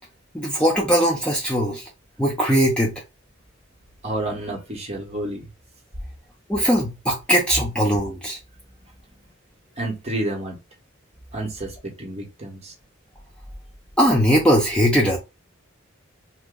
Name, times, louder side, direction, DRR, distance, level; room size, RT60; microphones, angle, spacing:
voice 1, 0.3-1.8 2.2-2.9 6.5-8.4 14.0-15.2, equal, 5° left, 0.6 m, -20 dB
voice 2, 4.0-5.5 8.8-8.9 9.8-10.6 11.3-12.7, right 1 dB, 30° right, 1.0 m, -30 dB
2.9 x 2.2 x 3.6 m
head